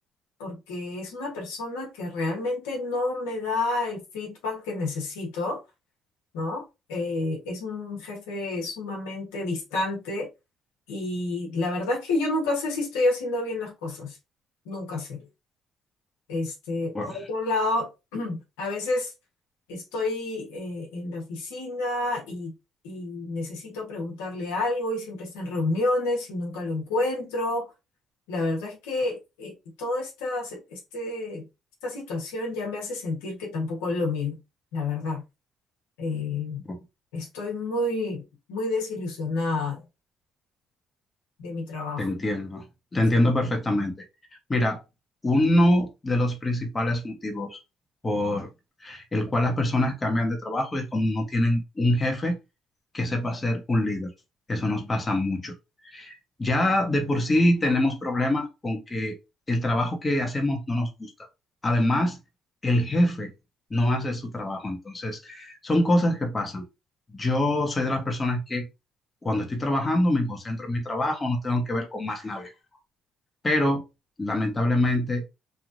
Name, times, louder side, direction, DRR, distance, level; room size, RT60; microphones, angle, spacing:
voice 1, 0.4-5.6 6.3-6.6 6.9-10.3 10.9-14.2 14.6-15.3 16.3-19.1 19.7-22.5 22.8-27.7 28.3-29.5 29.8-31.4 31.8-34.4 34.7-35.2 36.0-36.6 37.1-38.2 38.5-39.8 41.4-42.1, left 2 dB, 90° left, 1.1 m, -29 dB
voice 2, 42.0-42.6 42.9-44.1 44.5-44.8 45.2-47.6 48.0-48.5 48.8-52.4 52.9-54.1 54.5-55.5 55.8-59.1 59.5-61.1 61.6-62.2 62.6-63.3 63.7-66.6 67.1-68.7 69.2-72.5 73.4-73.8 74.2-75.2, left 1 dB, 25° left, 1.0 m, -25 dB
3.1 x 2.4 x 2.5 m
supercardioid pair, 65°, 0 cm